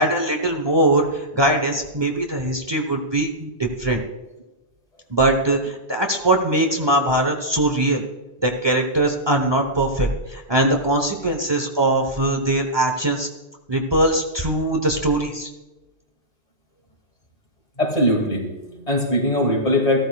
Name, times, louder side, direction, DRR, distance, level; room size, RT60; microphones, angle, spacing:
voice 1, 0.0-4.0 5.1-8.0 8.4-13.3 13.7-15.5, right 1 dB, 25° right, 3 dB, 1.0 m, -21 dB
voice 2, 17.8-20.1, left 1 dB, 35° left, 0 dB, 2.4 m, -21 dB
14.0 x 13.5 x 2.3 m, 1.1 s
omnidirectional pair, 1.1 m